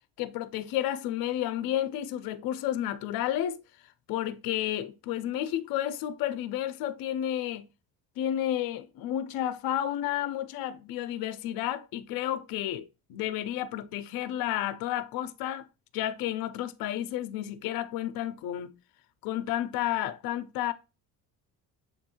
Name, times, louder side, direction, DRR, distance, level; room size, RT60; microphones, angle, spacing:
voice 1, 0.2-3.6 4.1-7.7 8.2-15.7 15.9-18.7 19.2-20.7, left 12 dB, 75° left, 0.6 m, -31 dB
6.9 x 2.6 x 2.8 m
cardioid pair, 120°, 36 cm